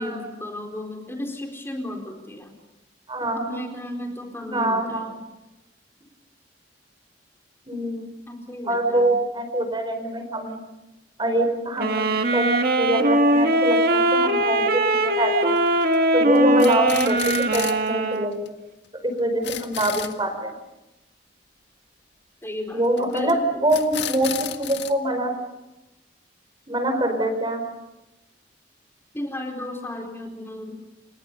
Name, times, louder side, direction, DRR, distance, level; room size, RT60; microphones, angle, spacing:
voice 1, 0.0-2.5 3.2-5.1 8.3-9.2 16.3-16.8 19.3-19.4 22.4-23.4 29.1-30.9, left 1 dB, 15° left, 3 dB, 4.3 m, -34 dB
voice 2, 3.1-3.6 4.4-5.1 7.7-8.0 8.6-10.6 11.2-12.5 12.7-15.5 16.1-18.5 19.0-20.5 22.7-25.3 26.7-27.6, right 1 dB, 25° right, 7 dB, 4.8 m, -24 dB
sound 1, 11.8-18.4, right 1 dB, 55° right, 1.8 m, -21 dB
sound 2, 15.6-16.0 16.3-17.9 18.2-18.3 18.5-18.6 18.8-18.9 19.2-20.2 23.0-23.3 23.7-24.9, left 9 dB, 75° left, 1.8 m, -33 dB
29.5 x 29.5 x 5.6 m, 0.96 s
head